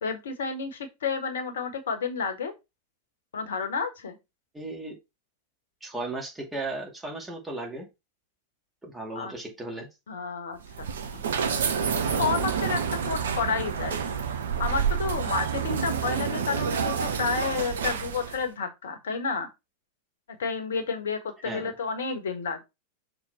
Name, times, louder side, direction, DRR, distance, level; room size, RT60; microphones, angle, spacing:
voice 1, 0.0-2.5 3.3-4.2 9.1-9.3 10.1-11.2 12.1-14.0 14.6-19.5 20.4-22.6, left 5 dB, 65° left, 1.4 m, -31 dB
voice 2, 4.5-5.0 5.8-7.9 8.8-9.9 21.4-21.7, right 2 dB, 10° right, 2.3 m, -35 dB
sound 1, 10.6-18.5, right 7 dB, 65° right, 0.8 m, -28 dB
6.0 x 3.8 x 4.2 m
figure-of-eight pair, 90°, 0 cm